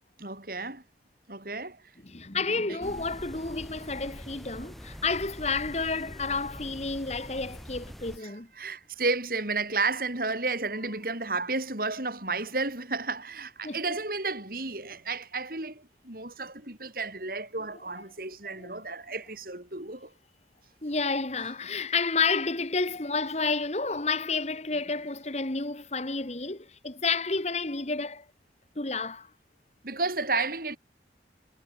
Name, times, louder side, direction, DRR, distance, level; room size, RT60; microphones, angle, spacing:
voice 1, 0.2-0.8 1.3-1.8 2.7-2.8 8.2-20.1 29.8-30.8, right 3 dB, 55° right, 5.5 m, -32 dB
voice 2, 2.0-8.5 13.6-13.8 18.4-18.7 20.8-28.2 28.7-29.3, left 4 dB, 40° left, 1.7 m, -30 dB
sound 1, 2.8-8.2, equal, ahead, 3.8 m, -44 dB
head